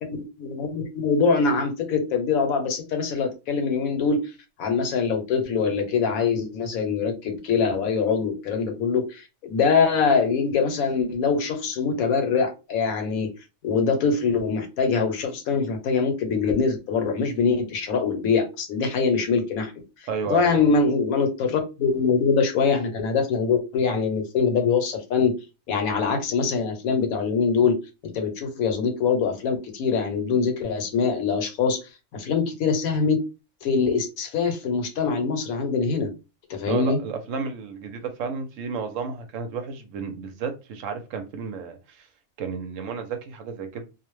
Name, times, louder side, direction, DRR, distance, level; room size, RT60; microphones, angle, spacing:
voice 1, 0.0-4.3 4.6-13.3 13.6-19.7 20.3-25.3 25.7-27.8 28.0-31.8 32.1-33.2 33.6-36.1 36.5-37.0, left 5 dB, 80° left, 1.1 m, -23 dB
voice 2, 20.1-20.7 36.7-42.1 42.4-43.8, right 5 dB, 70° right, 0.9 m, -32 dB
2.4 x 2.1 x 3.0 m
omnidirectional pair, 1.5 m